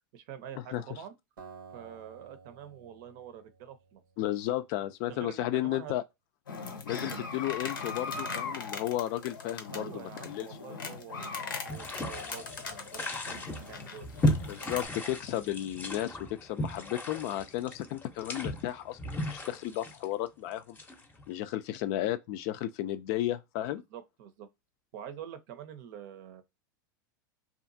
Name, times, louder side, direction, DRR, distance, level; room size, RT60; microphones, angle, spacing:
voice 1, 0.1-1.1 1.7-4.0 5.1-6.0 7.0-7.2 9.7-14.3 14.6-14.7 23.7-24.5 24.9-26.4, right 9 dB, 60° right, 0.6 m, -46 dB
Acoustic guitar, 1.4-4.5, right 5 dB, 90° right, 0.8 m, -52 dB
voice 2, 4.2-6.0 6.8-10.9 14.5-20.8 21.3-23.8, left 13 dB, 55° left, 0.4 m, -33 dB
sound 1, 6.5-14.9, left 4 dB, 85° left, 0.7 m, -40 dB
sound 2, 11.7-21.2, left 1 dB, 15° left, 0.6 m, -35 dB
2.7 x 2.4 x 2.6 m
hypercardioid pair, 95°, 11 cm